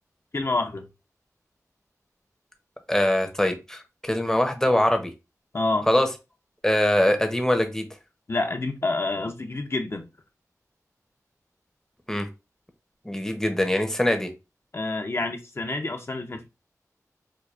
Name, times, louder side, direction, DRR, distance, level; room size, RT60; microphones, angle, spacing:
voice 1, 0.3-0.9 5.5-5.9 8.3-10.0 14.7-16.5, left 2 dB, 45° left, 0.7 m, -28 dB
voice 2, 2.9-5.1 5.9-6.1 6.6-7.9 12.1-12.3 13.0-14.3, left 1 dB, 10° left, 0.7 m, -23 dB
4.6 x 2.4 x 2.4 m
wide cardioid pair, 65°, 6 cm